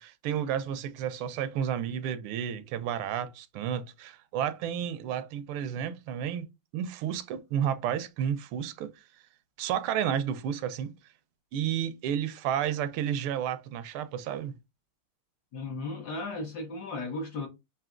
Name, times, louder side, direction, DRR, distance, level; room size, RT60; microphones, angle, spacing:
voice 1, 0.0-6.5 6.7-8.9 9.6-10.9 11.5-14.6, right 9 dB, 80° right, 1.4 m, -31 dB
voice 2, 15.5-17.5, left 2 dB, 60° left, 1.2 m, -35 dB
5.9 x 2.6 x 2.4 m
omnidirectional pair, 2.4 m